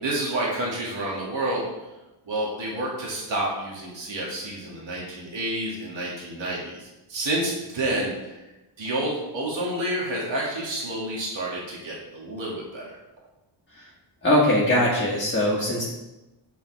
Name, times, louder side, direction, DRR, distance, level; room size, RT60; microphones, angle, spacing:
voice 1, 0.0-1.6 2.3-8.4 8.8-13.0, right 1 dB, 65° right, -5 dB, 2.5 m, -29 dB
voice 2, 14.2-15.8, left 1 dB, 25° left, -6 dB, 1.7 m, -21 dB
7.2 x 7.2 x 3.6 m, 1.0 s
cardioid pair, 90°, 48 cm